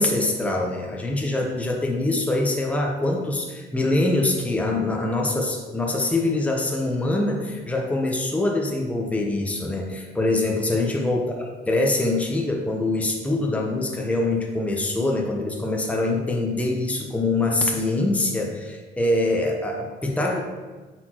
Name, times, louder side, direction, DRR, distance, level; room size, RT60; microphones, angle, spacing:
voice 1, 0.0-20.4, left 2 dB, 5° left, 0 dB, 0.8 m, -24 dB
8.2 x 4.5 x 3.0 m, 1.3 s
cardioid pair, 90°, 20 cm